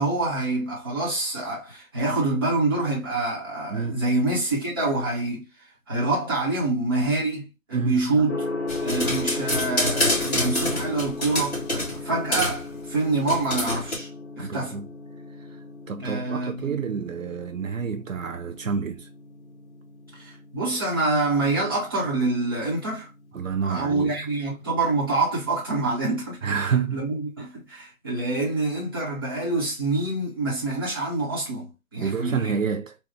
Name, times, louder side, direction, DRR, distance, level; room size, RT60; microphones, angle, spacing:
voice 1, 0.0-5.4 5.9-8.4 8.8-14.1 14.4-14.8 16.0-16.8 20.1-23.1 23.7-26.6 26.9-32.5, right 2 dB, 15° right, 1.0 m, -26 dB
voice 2, 3.7-4.0 7.7-8.3 14.4-14.9 15.5-15.6 15.9-19.1 23.3-24.2 26.4-27.0 32.0-33.0, right 6 dB, 65° right, 0.5 m, -28 dB
Gong, 8.3-26.2, left 3 dB, 50° left, 1.3 m, -37 dB
sound 1, 8.7-12.0 12.3-12.6 13.3-14.0, left 1 dB, 30° left, 2.1 m, -26 dB
4.0 x 2.3 x 3.3 m
figure-of-eight pair, 165°, 43 cm